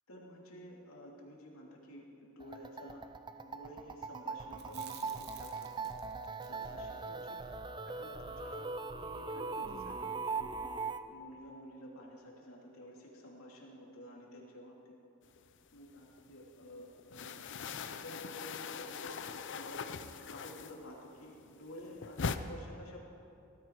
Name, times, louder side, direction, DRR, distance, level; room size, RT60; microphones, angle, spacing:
voice 1, 0.1-3.0 3.4-5.7 6.5-7.3 7.8-10.5 11.1-14.9 15.7-19.8 20.1-23.0, equal, 80° left, -2 dB, 3.0 m, -51 dB
sound 1, 2.4-11.0, right 4 dB, 20° right, 0.6 m, -40 dB
Chewing mastication, 4.5-8.7 8.9-9.0 9.4-10.1, right 5 dB, 50° right, 1.1 m, -54 dB
sound 2, 15.4-16.4 16.6-21.1 21.4-22.4, left 5 dB, 60° left, 0.6 m, -41 dB
19.0 x 13.5 x 4.8 m, 2.8 s
head